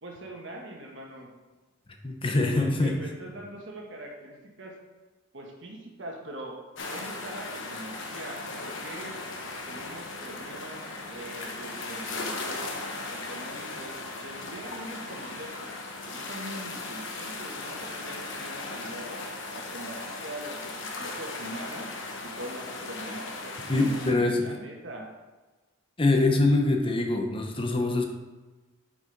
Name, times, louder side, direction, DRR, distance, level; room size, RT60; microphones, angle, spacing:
voice 1, 0.0-1.3 2.5-4.8 5.3-6.6 6.9-9.2 9.7-12.8 13.1-15.7 16.1-19.2 19.5-21.9 22.2-25.1, right 1 dB, 60° right, 0 dB, 1.4 m, -42 dB
voice 2, 2.0-2.9 23.7-24.6 26.0-28.0, left 2 dB, 25° left, 3 dB, 0.8 m, -24 dB
sound 1, 6.8-24.1, left 3 dB, 65° left, 1.1 m, -37 dB
6.8 x 5.2 x 5.3 m, 1.3 s
head